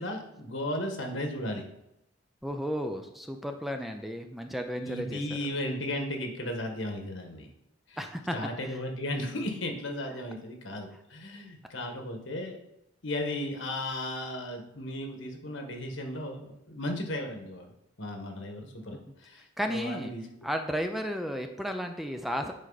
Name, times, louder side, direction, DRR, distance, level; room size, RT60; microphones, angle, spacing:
voice 1, 0.0-1.6 4.8-7.5 7.9-8.0 8.3-12.6 13.0-17.7 18.0-20.2, left 1 dB, 85° left, 3 dB, 1.5 m, -35 dB
voice 2, 2.4-5.2 8.0-8.4 19.6-20.1 20.4-22.5, equal, ahead, 5 dB, 0.5 m, -33 dB
9.3 x 4.8 x 4.0 m, 0.83 s
head